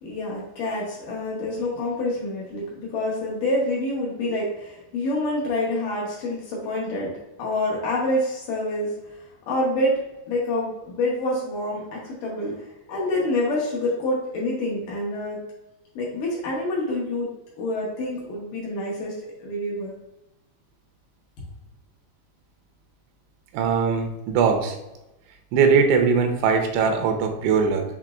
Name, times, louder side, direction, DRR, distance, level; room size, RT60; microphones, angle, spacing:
voice 1, 0.0-7.1 7.4-10.0 10.3-12.6 12.9-15.4 16.0-17.3 17.6-19.1 19.4-19.9, left 1 dB, 90° left, -5 dB, 1.8 m, -27 dB
voice 2, 23.5-24.8 25.5-27.8, right 5 dB, 85° right, 5 dB, 3.0 m, -20 dB
7.1 x 3.0 x 2.4 m, 0.98 s
omnidirectional pair, 5.2 m